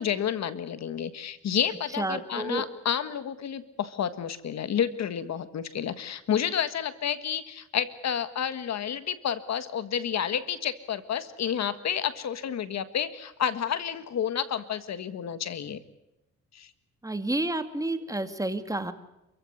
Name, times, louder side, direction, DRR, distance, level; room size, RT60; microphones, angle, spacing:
voice 1, 0.0-15.8 16.5-16.7, left 8 dB, 60° left, 12 dB, 1.7 m, -30 dB
voice 2, 2.0-2.6 17.0-18.9, right 2 dB, 10° right, 9 dB, 2.2 m, -30 dB
28.5 x 15.5 x 9.7 m, 0.92 s
cardioid pair, 90°, 30 cm